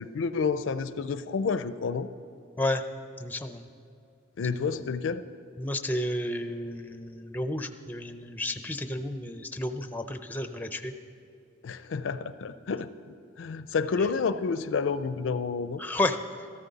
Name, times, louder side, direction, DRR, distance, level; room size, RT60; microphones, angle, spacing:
voice 1, 0.0-2.1 4.4-5.3 11.6-12.9 13.4-15.8, left 5 dB, 65° left, 13 dB, 0.4 m, -29 dB
voice 2, 3.2-3.7 5.6-10.9 14.0-14.1 15.8-16.2, left 1 dB, 10° left, 8 dB, 0.5 m, -31 dB
14.0 x 13.5 x 4.0 m, 2.5 s
head